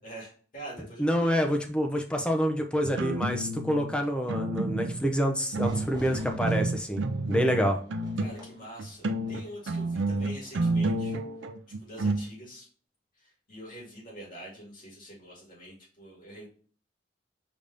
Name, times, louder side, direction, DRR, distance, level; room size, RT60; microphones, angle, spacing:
voice 1, 0.0-1.4 8.2-11.2 11.7-12.7 13.1-16.5, right 1 dB, 45° left, -4 dB, 2.1 m, -45 dB
voice 2, 1.0-7.0 7.3-7.8, equal, 5° left, 3 dB, 0.5 m, -27 dB
sound 1, 2.8-3.9 4.3-5.1 5.5-8.5 8.8-12.2, right 2 dB, 85° right, 0.5 m, -30 dB
Fire / Fireworks, 5.6-11.1, equal, 20° right, 1.0 m, -46 dB
5.1 x 2.7 x 3.4 m, 0.44 s
head